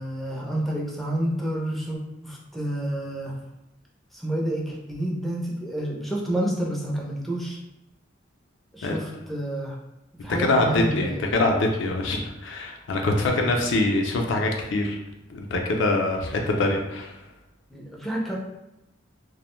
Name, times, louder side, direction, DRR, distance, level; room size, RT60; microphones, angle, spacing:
voice 1, 0.0-3.3 4.1-7.6 8.7-9.7 10.2-11.2 17.7-18.4, right 1 dB, ahead, -3 dB, 0.4 m, -29 dB
voice 2, 10.3-15.0 15.3-17.1, left 2 dB, 65° left, 1 dB, 0.4 m, -24 dB
2.4 x 2.1 x 3.0 m, 0.90 s
head